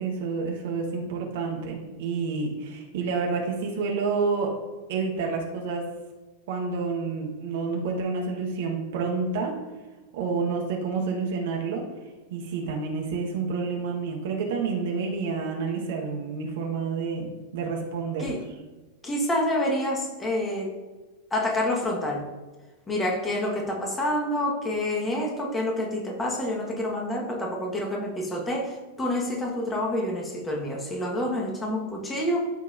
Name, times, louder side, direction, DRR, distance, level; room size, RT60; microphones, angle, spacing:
voice 1, 0.0-4.5 4.9-5.8 6.5-9.6 10.1-11.8 12.3-18.3, right 4 dB, 55° right, 0 dB, 1.5 m, -29 dB
voice 2, 19.0-20.7 21.3-22.3 22.9-32.5, left 1 dB, 15° left, 0 dB, 1.6 m, -28 dB
13.5 x 5.5 x 2.7 m, 1.2 s
figure-of-eight pair, 90°, 0 cm